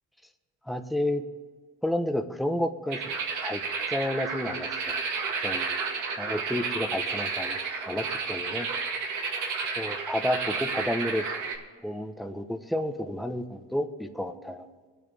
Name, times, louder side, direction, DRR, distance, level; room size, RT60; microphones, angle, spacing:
voice 1, 0.7-1.2 1.8-3.0 3.4-3.6 3.9-5.0 5.4-5.7 6.2-8.7 9.8-11.3 11.8-14.7, left 1 dB, ahead, 6 dB, 0.9 m, -31 dB
sound 1, 2.9-11.6, right 5 dB, 80° right, 1.9 m, -31 dB
22.5 x 8.9 x 3.4 m, 1.5 s
cardioid pair, 90°, 30 cm